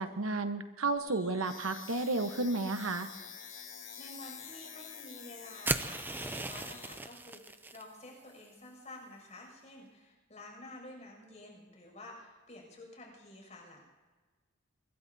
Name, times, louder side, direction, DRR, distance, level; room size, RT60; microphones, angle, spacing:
voice 1, 0.0-3.1, right 2 dB, 90° right, 8 dB, 1.1 m, -32 dB
sound 1, 1.0-7.0, left 7 dB, 70° left, 5.3 m, -48 dB
voice 2, 4.0-13.8, left 1 dB, 35° left, 0 dB, 6.4 m, -50 dB
sound 2, 5.6-7.8, right 2 dB, 10° right, 0.4 m, -36 dB
23.5 x 21.5 x 2.7 m, 1.3 s
head